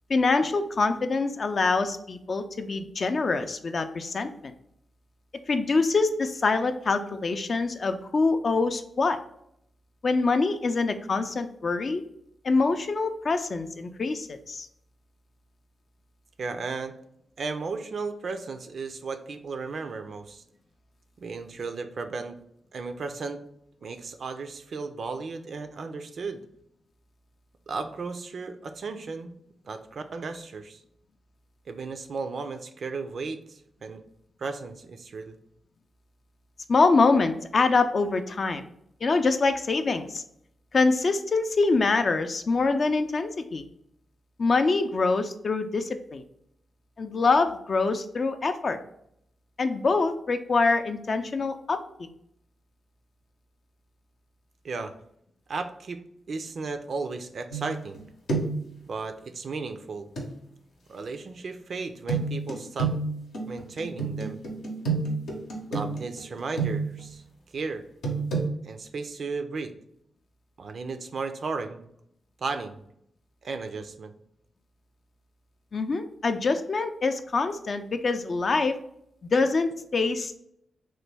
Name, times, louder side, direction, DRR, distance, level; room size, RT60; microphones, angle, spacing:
voice 1, 0.1-4.5 5.5-9.2 10.0-12.0 12.4-14.7 36.7-38.6 39.0-40.2 40.7-43.6 44.4-46.2 47.0-48.8 49.6-52.1 75.7-78.8 79.3-80.4, left 3 dB, 55° left, 8 dB, 0.3 m, -25 dB
voice 2, 16.4-16.9 17.4-20.4 21.2-22.4 22.7-23.4 23.8-26.4 27.7-29.3 29.6-30.8 31.7-34.0 34.4-35.4 54.6-54.9 55.5-56.0 56.3-58.0 58.9-60.1 60.9-62.9 63.5-64.4 65.7-67.2 67.5-67.8 68.6-69.7 70.6-71.8 72.4-72.8 73.4-74.1, right 4 dB, 65° right, 8 dB, 0.3 m, -35 dB
sound 1, 57.5-58.0 58.3-58.7 60.2-60.3 62.1-67.1 68.0-68.5, right 4 dB, 85° left, 0.8 m, -29 dB
3.1 x 2.2 x 3.3 m, 0.73 s
supercardioid pair, 45°, 0 cm